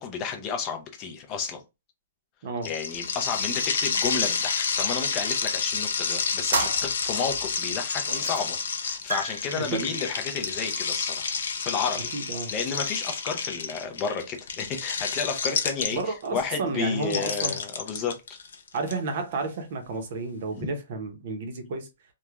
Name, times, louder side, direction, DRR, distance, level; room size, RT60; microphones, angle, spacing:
voice 1, 0.0-1.6 2.6-11.2 11.6-12.1 12.5-18.4 20.6-20.7, left 6 dB, 20° left, 0.5 m, -32 dB
sound 1, 2.6-16.3 17.0-18.9, left 5 dB, 70° left, 0.6 m, -29 dB
sound 2, 6.5-7.5 8.1-8.6 8.9-11.6, right 3 dB, 85° right, 0.8 m, -33 dB
voice 2, 9.6-9.9 12.1-12.5 15.9-17.6 18.7-21.9, right 3 dB, 45° right, 0.6 m, -31 dB
3.1 x 2.1 x 2.3 m
hypercardioid pair, 170°, 0 cm